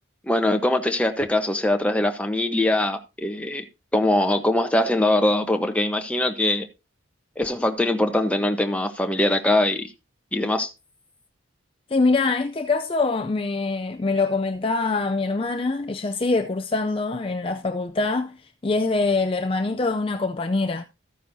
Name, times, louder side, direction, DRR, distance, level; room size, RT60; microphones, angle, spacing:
voice 1, 0.3-3.6 3.9-6.7 7.4-9.9 10.3-10.7, left 1 dB, 5° left, 0.9 m, -22 dB
voice 2, 11.9-20.8, left 3 dB, 25° left, 0.4 m, -24 dB
14.0 x 9.3 x 2.7 m
head